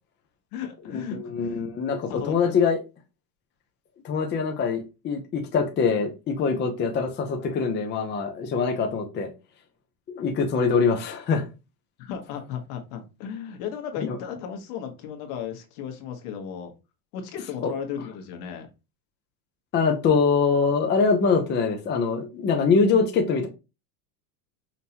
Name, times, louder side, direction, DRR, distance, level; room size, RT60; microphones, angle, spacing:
voice 1, 0.5-1.6 2.1-2.5 12.0-16.7 17.1-18.7, left 8 dB, 70° left, 4 dB, 1.4 m, -35 dB
voice 2, 1.1-2.8 4.0-9.3 10.1-11.4 14.0-14.2 17.6-17.7 19.7-23.5, left 5 dB, 25° left, 3 dB, 0.7 m, -23 dB
5.5 x 2.9 x 2.9 m, 0.28 s
supercardioid pair, 140°, 46 cm